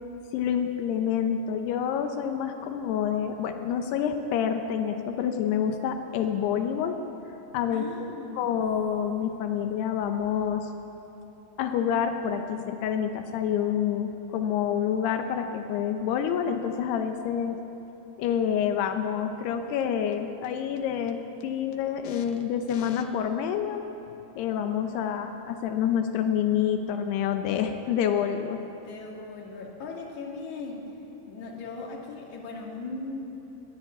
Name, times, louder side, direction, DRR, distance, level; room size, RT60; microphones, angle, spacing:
voice 1, 0.3-7.0 7.5-7.9 8.4-10.7 11.6-17.6 18.2-23.9 24.4-28.6, left 8 dB, 90° left, 6 dB, 3.0 m, -27 dB
voice 2, 7.7-8.5 28.7-30.9 31.3-33.2, left 3 dB, 50° left, -1 dB, 3.6 m, -38 dB
21.0 x 15.5 x 8.1 m, 2.9 s
omnidirectional pair, 4.6 m